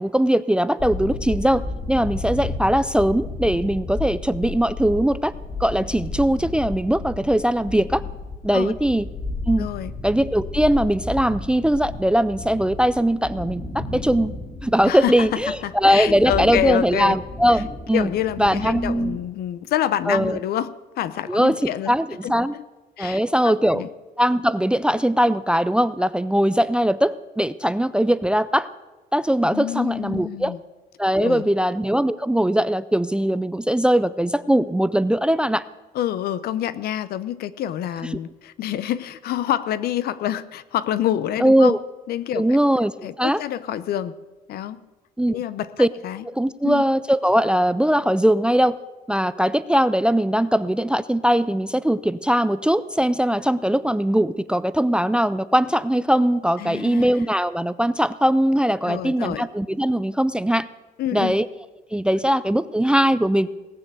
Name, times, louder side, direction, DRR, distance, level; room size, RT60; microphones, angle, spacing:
voice 1, 0.0-5.3 5.6-8.0 8.4-9.1 9.5-9.7 10.0-14.3 14.6-18.1 18.4-19.2 20.1-20.4 21.3-22.5 23.0-23.9 24.2-28.7 29.1-30.5 31.0-35.6 41.4-41.8 42.3-43.4 45.2-45.4 45.8-45.9 46.3-48.8 49.1-60.7 61.1-61.5 61.9-63.5, equal, 5° right, 16 dB, 0.4 m, -20 dB
sound 1, 0.8-19.2, left 2 dB, 25° left, 3.4 m, -33 dB
voice 2, 9.6-9.9 14.9-17.2 17.9-22.0 22.2-22.6 23.0-23.9 29.5-30.6 31.2-31.5 35.9-41.8 42.1-42.6 43.0-44.1 44.5-44.8 45.3-46.2 46.6-46.8 56.6-57.1 58.9-59.5 61.0-61.3, left 11 dB, 65° left, 16 dB, 0.7 m, -27 dB
18.5 x 6.8 x 8.2 m, 1.1 s
cardioid pair, 110°, 17 cm